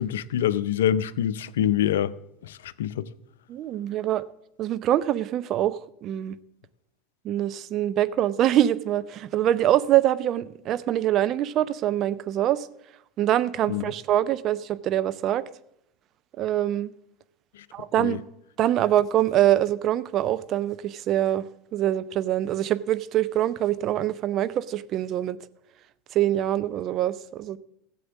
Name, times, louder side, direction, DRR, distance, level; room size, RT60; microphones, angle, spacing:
voice 1, 0.0-2.1 2.4-3.1 13.7-13.9 17.5-17.6 18.0-18.2, left 10 dB, 80° left, 0.5 m, -25 dB
voice 2, 3.5-4.2 4.6-6.4 7.2-12.7 13.2-15.5 16.4-16.9 17.7-18.2 18.6-21.4 21.7-25.4 26.1-27.6, right 12 dB, 50° right, 0.7 m, -24 dB
14.0 x 7.8 x 7.2 m
hypercardioid pair, 80°, 0 cm